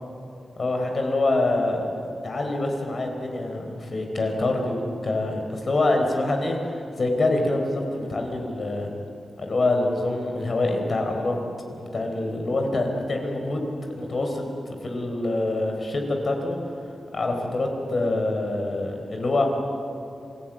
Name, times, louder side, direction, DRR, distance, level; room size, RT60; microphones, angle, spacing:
voice 1, 0.6-1.9 2.2-6.6 7.0-8.9 9.4-11.4 11.7-16.6 17.1-19.4, left 2 dB, 45° left, 3 dB, 4.1 m, -25 dB
26.5 x 16.0 x 9.1 m, 2.7 s
wide cardioid pair, 120°, 0 cm